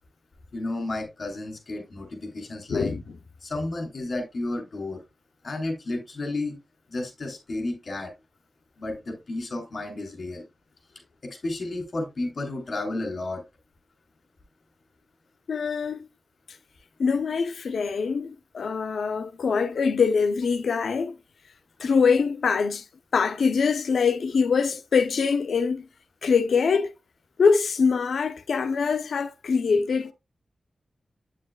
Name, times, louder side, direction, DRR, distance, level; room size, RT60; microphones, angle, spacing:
voice 1, 0.5-2.9 3.4-5.0 5.4-6.6 6.9-8.1 8.8-10.5 11.2-13.4, left 2 dB, 45° left, 3.4 m, -32 dB
voice 2, 2.7-3.0 15.5-16.1 17.0-21.1 21.8-22.8 23.1-25.9 26.2-26.9 27.4-30.1, left 5 dB, 90° left, 0.7 m, -23 dB
8.7 x 7.6 x 2.3 m
wide cardioid pair, 145°, 0 cm